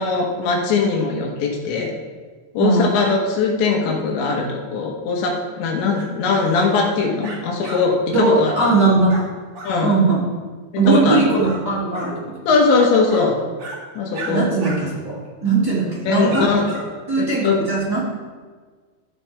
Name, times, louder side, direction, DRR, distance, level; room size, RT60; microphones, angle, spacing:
voice 1, 0.0-1.9 2.6-8.5 9.6-10.0 10.9-11.2 12.5-13.4 14.0-14.5 16.1-16.7 17.2-17.6, left 4 dB, 80° left, 0 dB, 3.7 m, -20 dB
sound 1, 6.0-6.1 6.4-6.8 7.2-7.8 8.1-8.3 8.5-8.7 9.1-9.3 9.5-9.7 11.1-11.6 11.9-12.1 12.7-13.3 13.6-13.8 14.1-14.3 14.6-14.8 15.1-15.2 15.9-16.0 16.3-16.8, right 2 dB, 50° right, 1.8 m, -34 dB
voice 2, 8.1-9.1 9.8-10.2 10.7-12.3 14.3-15.1 15.4-16.5 17.1-18.0, right 3 dB, 15° right, -8 dB, 0.8 m, -19 dB
14.0 x 7.1 x 3.5 m, 1.5 s
omnidirectional pair, 5.2 m